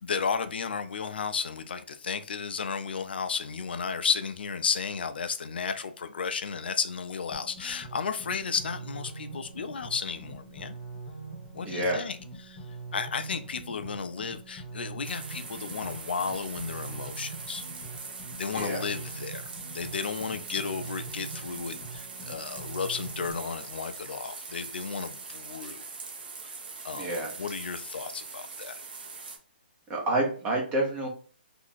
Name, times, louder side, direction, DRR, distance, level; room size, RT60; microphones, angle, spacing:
voice 1, 0.0-10.8 11.5-12.2 12.4-12.6 12.9-17.6 18.4-19.4 19.7-25.8 26.4-26.5 26.8-28.8, left 6 dB, 70° left, 0.5 m, -33 dB
sound 1, 7.3-23.3, right 3 dB, 30° left, 0.9 m, -43 dB
voice 2, 11.6-12.1 18.5-18.9 26.9-27.3 29.9-31.1, right 1 dB, 15° right, 0.9 m, -28 dB
sound 2, 15.0-29.4, right 4 dB, 60° right, 0.8 m, -42 dB
2.9 x 2.5 x 3.9 m
hypercardioid pair, 165°, 6 cm